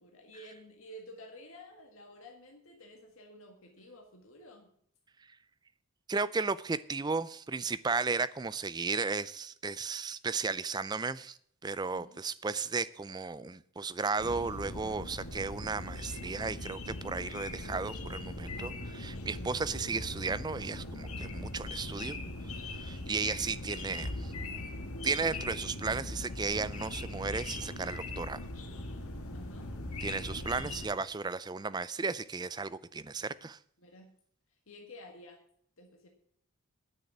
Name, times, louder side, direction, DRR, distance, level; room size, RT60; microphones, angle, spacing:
voice 1, 0.0-4.7 11.9-12.2 18.5-19.0 19.3-19.6 29.3-29.7 30.1-30.4 33.8-34.1 34.5-35.4 35.8-36.1, equal, 65° left, 1.7 m, -52 dB
voice 2, 6.1-18.7 19.0-22.2 22.5-24.3 25.0-28.5 30.0-33.6, right 4 dB, 20° right, 0.4 m, -34 dB
sound 1, 14.2-30.9, left 2 dB, 85° left, 1.9 m, -40 dB
10.0 x 6.5 x 9.0 m
head